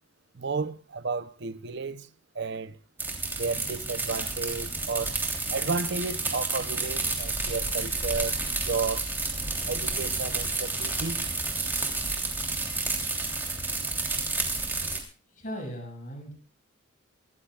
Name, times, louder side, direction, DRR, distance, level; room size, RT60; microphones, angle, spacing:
voice 1, 0.3-2.1 2.3-2.8 3.4-5.2 5.5-8.4 8.6-9.1 9.7-11.3, right 4 dB, 55° right, 0.7 m, -32 dB
sound 1, 3.0-15.0, right 3 dB, 10° right, 3.2 m, -30 dB
voice 2, 15.3-16.3, equal, 40° left, 6.7 m, -38 dB
25.5 x 14.5 x 2.4 m
head